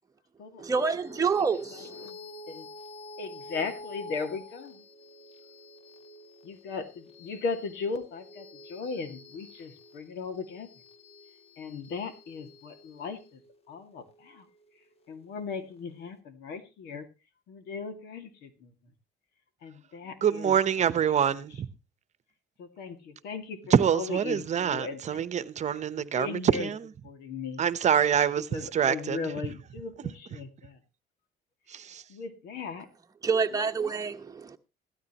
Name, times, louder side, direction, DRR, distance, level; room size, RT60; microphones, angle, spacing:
voice 1, 0.6-2.1 33.2-34.6, right 5 dB, 20° right, 1.1 m, -28 dB
sound 1, 0.7-15.5, left 2 dB, 35° left, 1.4 m, -49 dB
voice 2, 3.2-4.8 6.4-10.7 11.6-13.4 13.7-14.5 15.1-17.1 17.5-18.7 19.6-20.6 22.6-25.5 26.0-26.7 27.0-27.6 28.5-30.8 32.1-32.9, left 4 dB, 80° left, 2.2 m, -37 dB
voice 3, 20.2-21.7 23.7-26.9 27.6-29.3 31.7-32.0, right 8 dB, 45° right, 1.0 m, -26 dB
16.0 x 13.0 x 3.0 m
cardioid pair, 110°, 17 cm